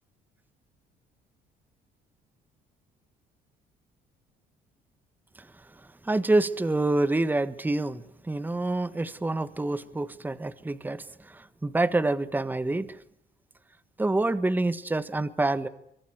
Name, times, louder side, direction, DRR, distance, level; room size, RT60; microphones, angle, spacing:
voice 1, 6.0-13.0 14.0-15.7, right 2 dB, 10° right, 1.5 m, -27 dB
24.0 x 24.0 x 9.6 m
cardioid pair, 110°, 17 cm